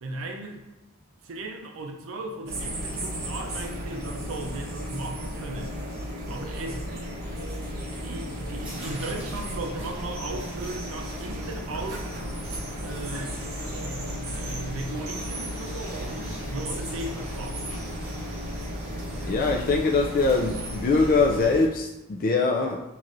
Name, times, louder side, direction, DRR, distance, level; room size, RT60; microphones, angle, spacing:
voice 1, 0.0-0.7 1.2-5.8 6.3-6.9 7.9-12.2 12.8-17.9, right 2 dB, 70° right, 2 dB, 0.5 m, -37 dB
sound 1, 2.5-21.7, equal, 50° right, 0.9 m, -34 dB
sound 2, 8.6-21.5, right 1 dB, 5° right, 1.1 m, -44 dB
voice 2, 19.2-22.8, left 3 dB, 45° left, 1 dB, 0.4 m, -23 dB
5.8 x 3.1 x 2.5 m, 0.94 s
head